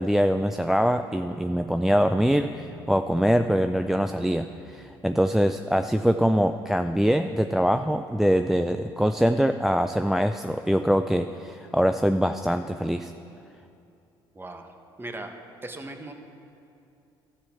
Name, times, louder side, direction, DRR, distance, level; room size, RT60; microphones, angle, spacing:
voice 1, 0.0-13.1, equal, 5° right, 8 dB, 0.3 m, -23 dB
Bass guitar, 2.2-5.6, left 5 dB, 45° left, 0.9 m, -48 dB
voice 2, 14.3-14.7 15.0-15.3 15.6-16.1, right 2 dB, 20° right, 5 dB, 1.2 m, -37 dB
12.5 x 7.2 x 5.9 m, 2.7 s
hypercardioid pair, 65°, 11 cm